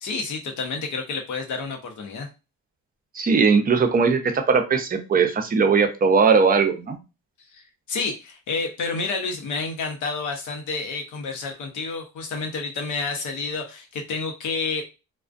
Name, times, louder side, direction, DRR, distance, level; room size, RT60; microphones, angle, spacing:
voice 1, 0.0-2.3 7.5-14.8, left 4 dB, 75° left, 4 dB, 0.8 m, -29 dB
voice 2, 3.1-7.0, right 5 dB, 30° right, 5 dB, 0.5 m, -19 dB
2.4 x 2.1 x 2.4 m, 0.28 s
cardioid pair, 90°, 30 cm